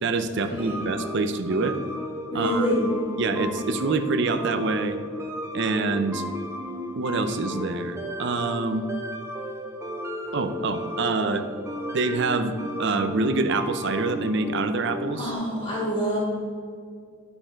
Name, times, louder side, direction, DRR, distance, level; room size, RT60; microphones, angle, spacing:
voice 1, 0.0-1.8 2.3-2.7 3.2-5.0 5.5-6.2 7.0-8.9 10.3-11.5 11.9-15.3, right 3 dB, 60° right, 9 dB, 0.6 m, -26 dB
sound 1, 0.6-15.3, left 1 dB, 15° right, 1.0 m, -34 dB
voice 2, 2.3-3.0 15.2-16.2, equal, 25° left, -6 dB, 2.3 m, -26 dB
12.5 x 4.4 x 4.6 m, 2.2 s
head